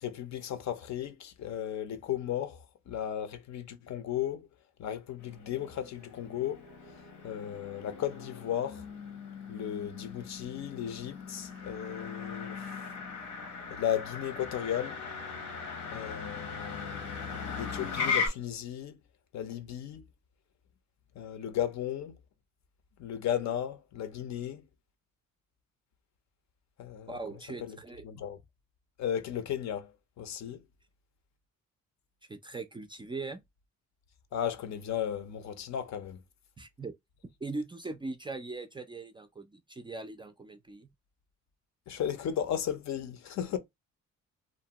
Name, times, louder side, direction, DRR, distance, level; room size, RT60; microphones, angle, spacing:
voice 1, 0.0-2.6 2.9-4.5 4.8-6.6 7.2-8.8 9.5-12.9 13.7-15.0 15.9-19.0 19.3-20.0 21.2-22.2 23.0-24.6 26.8-27.1 27.6-27.8 28.0-28.4 29.0-29.9 30.2-30.6 34.3-36.2 41.9-43.6, left 10 dB, 65° left, 0.6 m, -35 dB
Motor vehicle (road), 5.2-18.3, left 5 dB, 85° left, 1.0 m, -38 dB
voice 2, 27.1-28.1 32.3-33.4 36.6-36.9 37.4-40.9, right 3 dB, 15° right, 0.3 m, -40 dB
2.6 x 2.1 x 2.8 m
cardioid pair, 90°, 30 cm